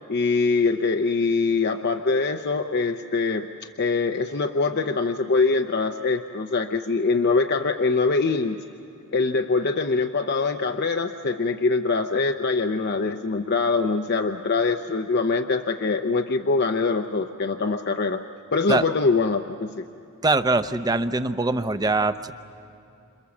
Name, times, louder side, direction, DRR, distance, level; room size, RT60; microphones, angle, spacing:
voice 1, 0.1-3.5 3.8-8.6 9.1-18.2 18.5-19.9, left 4 dB, 50° left, 6 dB, 0.7 m, -23 dB
voice 2, 20.2-22.3, right 2 dB, 15° right, 11 dB, 0.7 m, -22 dB
29.5 x 27.5 x 7.2 m, 2.6 s
head